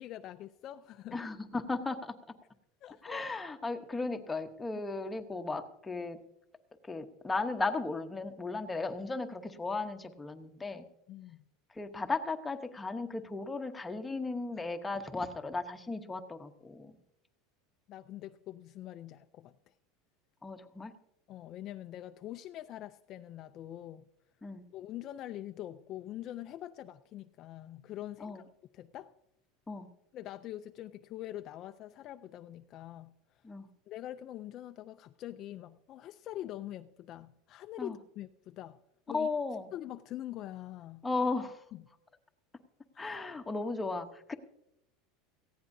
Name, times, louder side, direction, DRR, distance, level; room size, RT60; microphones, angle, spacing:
voice 1, 0.0-1.3 2.8-3.2 11.1-11.4 17.9-19.7 21.3-24.1 24.7-28.4 28.7-29.1 30.1-33.1 33.9-38.8 39.1-39.3 39.7-41.1 41.7-41.8 42.9-43.2, left 13 dB, 40° left, 9 dB, 0.4 m, -44 dB
voice 2, 1.1-2.1 3.0-6.2 6.9-10.9 11.7-16.9 20.4-20.9 24.4-24.6 28.2-28.4 29.7-29.9 33.4-33.7 37.8-38.0 39.1-39.7 41.0-41.6 43.0-44.3, left 3 dB, 10° left, 6 dB, 0.9 m, -36 dB
18.0 x 15.5 x 2.7 m, 0.85 s
supercardioid pair, 145°, 0 cm